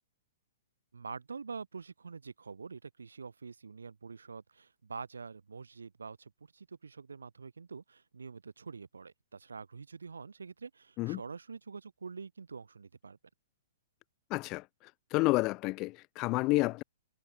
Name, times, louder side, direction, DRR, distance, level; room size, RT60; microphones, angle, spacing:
voice 1, 0.9-13.2, right 5 dB, 90° right, 1.9 m, -46 dB
voice 2, 14.3-14.6 15.1-16.8, left 22 dB, 35° left, 0.6 m, -29 dB
hypercardioid pair, 125°, 0 cm